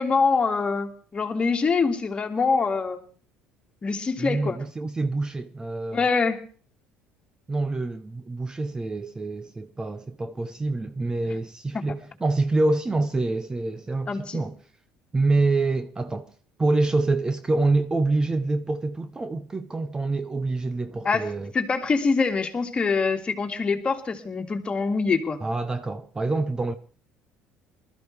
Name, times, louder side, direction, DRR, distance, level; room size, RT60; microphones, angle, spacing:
voice 1, 0.0-3.0 3.8-4.6 5.9-6.4 11.3-11.4 11.7-11.8 14.1-14.4 21.0-21.2 21.5-25.4, left 4 dB, 30° left, 2.1 m, -24 dB
voice 2, 4.2-6.0 7.5-14.6 15.1-16.3 16.6-21.5 25.4-26.7, right 2 dB, 20° right, 0.7 m, -26 dB
20.5 x 13.5 x 3.3 m
supercardioid pair, 90°, 4 cm